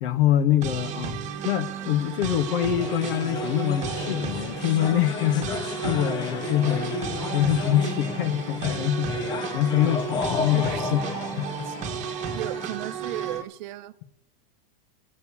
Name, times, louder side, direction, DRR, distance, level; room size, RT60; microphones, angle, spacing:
voice 1, 0.0-1.2 1.4-7.0 7.3-11.0 11.4-11.7, left 11 dB, 60° left, 1.2 m, -25 dB
sound 1, 0.6-13.4, right 7 dB, 25° right, 1.4 m, -33 dB
sound 2, 1.9-12.7, left 5 dB, 15° left, 0.4 m, -33 dB
voice 2, 10.3-11.1 11.7-11.8 12.3-14.0, right 16 dB, 50° right, 0.7 m, -36 dB
15.5 x 6.6 x 8.6 m
supercardioid pair, 165°, 30 cm